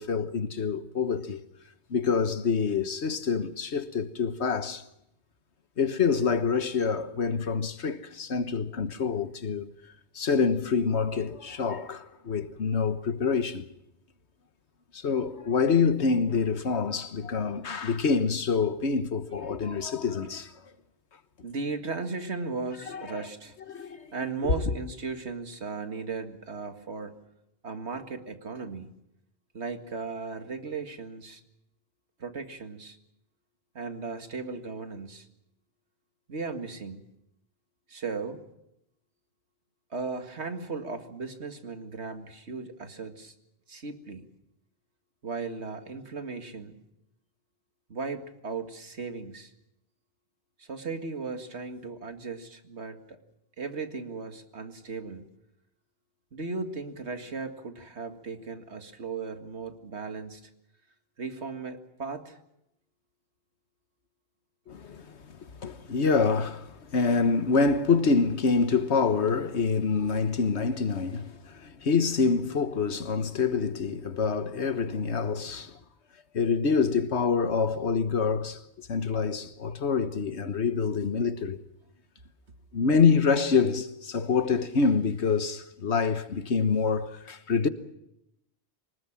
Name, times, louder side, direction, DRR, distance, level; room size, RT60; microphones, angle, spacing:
voice 1, 0.0-1.4 1.9-4.8 5.8-9.7 10.1-13.7 14.9-20.5 22.9-23.0 23.7-24.1 24.4-24.5 64.7-75.8 76.3-81.6 82.7-87.7, left 5 dB, 75° left, 1.5 m, -26 dB
voice 2, 21.4-23.6 24.1-27.2 27.6-28.9 29.5-31.4 32.2-33.0 33.7-35.3 36.3-37.0 37.9-38.4 39.9-43.3 43.7-44.3 45.2-46.8 47.9-49.5 50.6-53.2 53.6-55.2 56.3-60.5 61.2-62.4, right 4 dB, 75° right, 2.3 m, -36 dB
24.0 x 19.5 x 7.4 m
omnidirectional pair, 1.1 m